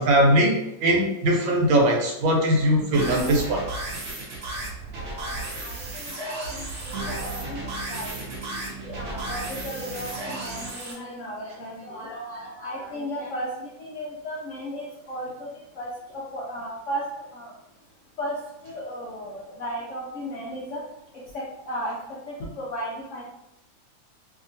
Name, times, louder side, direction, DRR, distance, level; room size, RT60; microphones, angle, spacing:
voice 1, 0.0-3.6, right 1 dB, 85° right, 0 dB, 1.4 m, -20 dB
sound 1, 2.9-10.9, right 2 dB, 60° right, 0.7 m, -33 dB
voice 2, 5.6-8.2 8.8-15.5 15.7-17.1 17.3-17.5 18.2-20.8 21.1-23.2, equal, 90° left, -5 dB, 0.6 m, -35 dB
2.8 x 2.8 x 2.6 m, 0.87 s
omnidirectional pair, 2.1 m